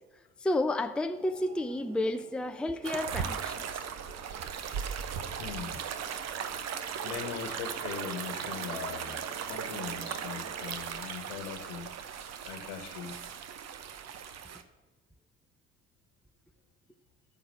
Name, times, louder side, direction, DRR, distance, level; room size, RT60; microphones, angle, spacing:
voice 1, 0.4-3.6, left 1 dB, 5° left, 0.6 m, -31 dB
sound 1, 1.1-10.8, right 4 dB, 65° right, 1.9 m, -51 dB
sound 2, 2.8-14.6, right 7 dB, 45° right, 1.0 m, -37 dB
voice 2, 5.4-5.9 7.0-11.9 12.4-13.2, left 7 dB, 65° left, 1.4 m, -40 dB
13.5 x 4.7 x 7.5 m
figure-of-eight pair, 60°, 36 cm